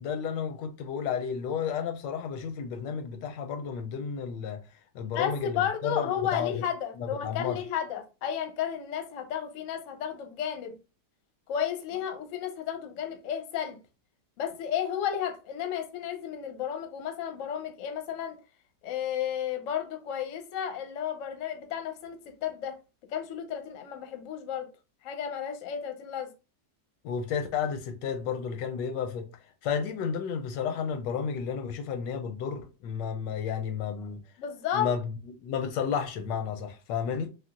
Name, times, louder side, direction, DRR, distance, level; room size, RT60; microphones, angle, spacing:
voice 1, 0.0-4.6 4.9-6.6 7.0-7.6 27.0-29.3 29.6-34.2 34.7-35.0 35.4-37.3, left 7 dB, 90° left, 1.2 m, -32 dB
voice 2, 5.0-10.8 11.5-13.8 14.4-18.4 18.8-22.8 23.1-24.7 25.0-26.3 34.4-34.9, left 9 dB, 65° left, 0.8 m, -33 dB
3.6 x 2.3 x 2.4 m
omnidirectional pair, 1.9 m